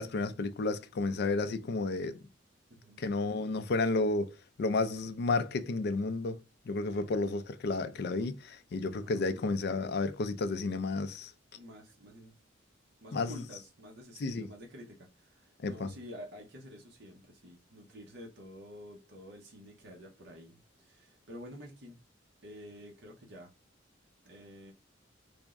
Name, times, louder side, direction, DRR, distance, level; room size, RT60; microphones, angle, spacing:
voice 1, 0.0-2.2 3.0-4.3 4.6-6.4 6.7-11.3 13.1-13.3 14.2-14.5 15.6-15.9, left 3 dB, 55° left, 0.4 m, -32 dB
voice 2, 2.7-3.1 6.9-7.1 9.0-9.2 11.5-12.3 13.0-22.0 22.4-23.5 24.2-24.7, equal, 60° right, 0.7 m, -49 dB
3.4 x 2.0 x 3.5 m
head